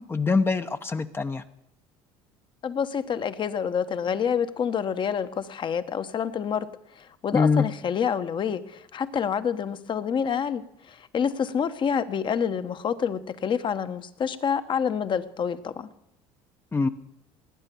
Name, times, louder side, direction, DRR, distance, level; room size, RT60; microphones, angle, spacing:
voice 1, 0.0-1.4 7.3-7.7 16.7-16.9, left 4 dB, 20° left, 9 dB, 0.8 m, -24 dB
voice 2, 2.6-6.7 6.9-15.9, left 7 dB, 40° left, 12 dB, 1.1 m, -28 dB
19.0 x 9.0 x 7.0 m, 0.84 s
supercardioid pair, 90°, 12 cm